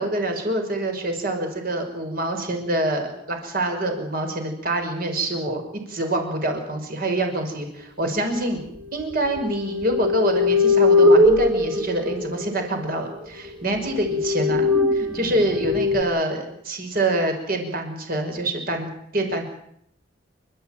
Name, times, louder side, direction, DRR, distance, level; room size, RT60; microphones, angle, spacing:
voice 1, 0.0-5.6 5.9-14.7 14.9-19.5, right 1 dB, 50° right, 4 dB, 6.1 m, -26 dB
sound 1, 9.2-12.9 13.4-13.5 13.9-16.0, left 2 dB, 10° right, 1.9 m, -20 dB
28.5 x 13.5 x 9.4 m, 0.74 s
head